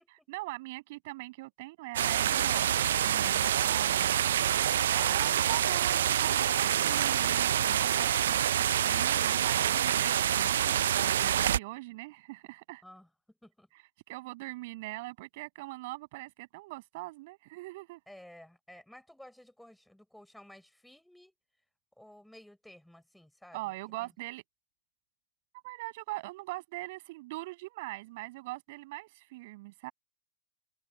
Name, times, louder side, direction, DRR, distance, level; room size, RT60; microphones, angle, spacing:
voice 1, 0.3-4.2 4.6-12.8 14.1-18.0 23.5-24.4 25.6-29.9, right 21 dB, 50° right, 7.7 m, -42 dB
sound 1, 2.0-11.6, right 10 dB, 80° right, 0.4 m, -27 dB
voice 2, 18.1-21.3 22.0-23.6 24.0-24.1, left 1 dB, ahead, 6.2 m, -54 dB
open air
supercardioid pair, 145°, 0 cm